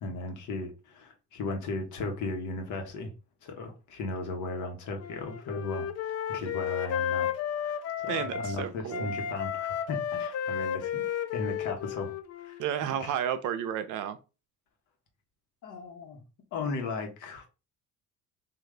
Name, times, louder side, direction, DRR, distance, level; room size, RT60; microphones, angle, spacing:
voice 1, 0.0-3.1 3.4-7.3 7.6-11.1 11.3-13.1 15.6-16.2 16.5-17.5, left 3 dB, 65° left, 1.2 m, -36 dB
Wind instrument woodwind instrument, 5.0-8.6 8.9-12.7, left 9 dB, 50° left, 0.5 m, -33 dB
voice 2, 8.1-9.1 12.6-14.2, right 9 dB, 70° right, 0.6 m, -32 dB
3.8 x 2.5 x 3.2 m
cardioid pair, 115°, 32 cm